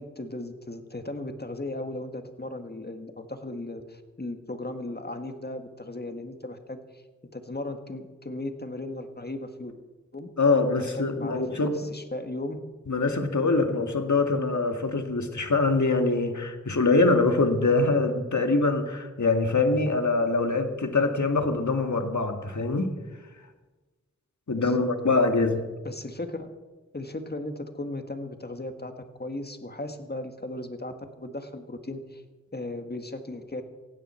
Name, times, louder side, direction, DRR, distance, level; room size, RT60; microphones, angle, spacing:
voice 1, 0.0-7.0 7.3-9.8 10.1-10.3 10.8-12.6 24.5-25.2 25.8-26.5 26.9-32.2 32.5-33.6, left 2 dB, 35° left, 6 dB, 1.8 m, -36 dB
voice 2, 10.4-11.8 12.9-22.9 24.5-25.6, left 3 dB, 70° left, 5 dB, 1.9 m, -24 dB
17.5 x 16.0 x 4.5 m, 1.2 s
wide cardioid pair, 40°, 30 cm